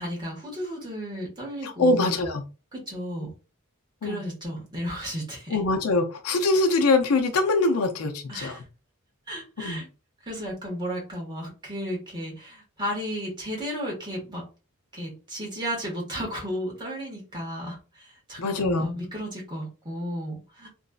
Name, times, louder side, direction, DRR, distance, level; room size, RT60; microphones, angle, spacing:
voice 1, 0.0-2.2 2.7-3.3 4.0-5.6 8.3-8.6 9.3-9.9 10.2-14.4 14.9-20.7, equal, 20° right, -3 dB, 1.5 m, -34 dB
voice 2, 1.6-2.4 3.2-3.3 4.0-4.2 5.5-8.6 9.6-9.8 18.4-18.9, left 2 dB, 75° left, 5 dB, 0.6 m, -23 dB
3.0 x 2.5 x 2.4 m, 0.32 s
head